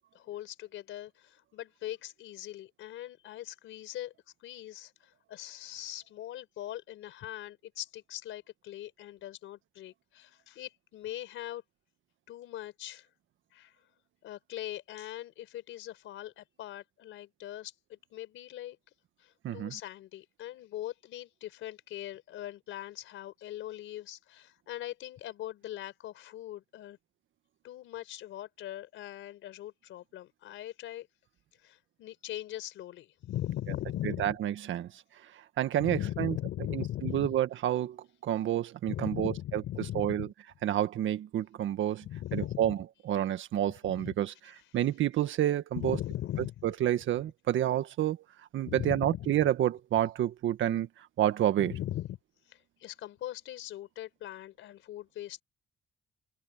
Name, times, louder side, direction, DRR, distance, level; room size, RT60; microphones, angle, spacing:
voice 1, 0.1-4.1 4.4-11.6 12.3-13.1 13.5-13.7 14.2-18.8 19.2-27.0 27.6-31.1 31.6-34.4 35.8-37.4 38.9-40.3 42.0-42.7 43.9-44.1 45.7-46.7 48.7-49.5 51.6-52.2 52.5-55.4, left 13 dB, 85° left, 4.6 m, -40 dB
voice 2, 34.2-34.9 35.6-36.3 36.7-38.0 38.2-39.6 40.0-40.3 40.6-42.1 42.3-42.8 43.1-44.3 44.7-46.0 46.8-48.2 48.5-50.9 51.2-51.7, right 12 dB, 75° right, 1.8 m, -29 dB
cardioid pair, 90°, 20 cm